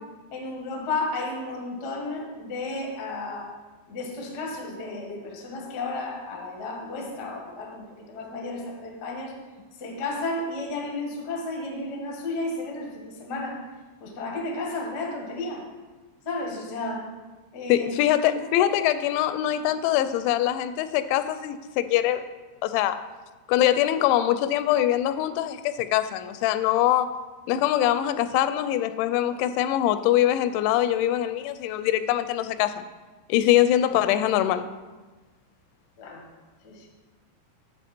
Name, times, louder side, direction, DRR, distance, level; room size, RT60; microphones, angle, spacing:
voice 1, 0.3-3.5 3.9-9.3 9.8-13.6 14.0-15.7 16.2-17.1 17.5-17.9 18.6-18.8 36.0-36.2 36.6-36.9, left 2 dB, 65° left, -1 dB, 1.0 m, -33 dB
voice 2, 17.7-22.2 22.6-23.0 23.5-27.1 27.5-32.9 33.3-34.7, left 12 dB, 85° left, 12 dB, 2.9 m, -23 dB
10.5 x 8.1 x 4.4 m, 1.2 s
omnidirectional pair, 5.2 m